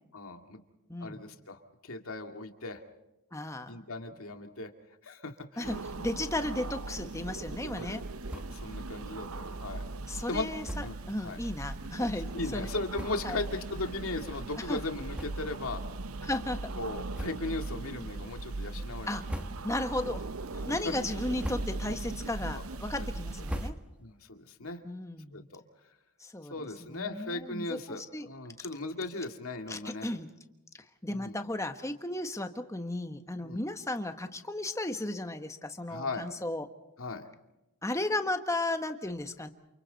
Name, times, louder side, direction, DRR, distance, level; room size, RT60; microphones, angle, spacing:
voice 1, 0.1-0.6 1.0-2.8 3.7-4.7 5.0-5.8 7.8-8.0 8.3-9.8 10.3-10.5 10.8-11.4 12.3-15.8 16.8-19.1 19.4-19.5 22.5-22.6 23.0-23.1 24.0-24.8 25.3-25.6 26.5-30.1 31.1-31.4 33.4-33.6 35.9-36.2 37.0-37.2, left 2 dB, 75° left, 5 dB, 2.3 m, -37 dB
voice 2, 0.9-1.2 3.3-3.7 5.6-8.0 10.1-12.7 13.2-13.4 14.7-14.8 16.2-16.6 19.1-19.2 19.6-20.2 20.7-23.8 24.8-25.5 26.2-28.3 29.7-30.3 31.0-36.7 37.8-39.5, left 1 dB, 15° left, 7 dB, 1.3 m, -35 dB
sound 1, 5.6-23.7, right 3 dB, 75° right, 0.8 m, -39 dB
sound 2, 8.2-8.7 9.1-9.2 9.5-9.6 10.6-11.0 11.8-11.9 12.6-12.7 12.9-13.5 14.0-14.1 15.1-15.8 16.1-16.3 17.1-17.7 18.1-18.6 19.1-19.9 20.3-20.8 21.2-22.0 22.4-24.2, equal, 5° right, 1.2 m, -41 dB
29.0 x 28.5 x 4.1 m, 0.93 s
head